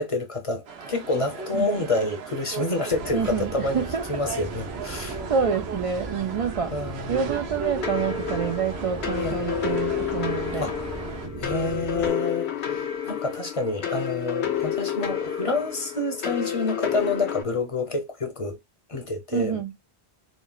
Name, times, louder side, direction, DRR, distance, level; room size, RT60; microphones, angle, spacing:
voice 1, 0.0-3.8 4.1-5.2 6.7-7.2 9.2-9.5 10.6-11.1 11.4-18.6 18.9-19.6, left 2 dB, 35° left, 0.7 m, -28 dB
sound 1, 0.7-11.3, right 5 dB, 75° right, 0.9 m, -37 dB
sound 2, 2.9-12.1, right 3 dB, 25° right, 0.7 m, -37 dB
voice 2, 3.1-4.0 5.3-6.8 7.1-10.7 19.3-19.7, right 6 dB, 60° right, 0.3 m, -27 dB
sound 3, 7.8-17.4, left 9 dB, 80° left, 1.0 m, -29 dB
4.1 x 2.0 x 2.3 m
omnidirectional pair, 1.1 m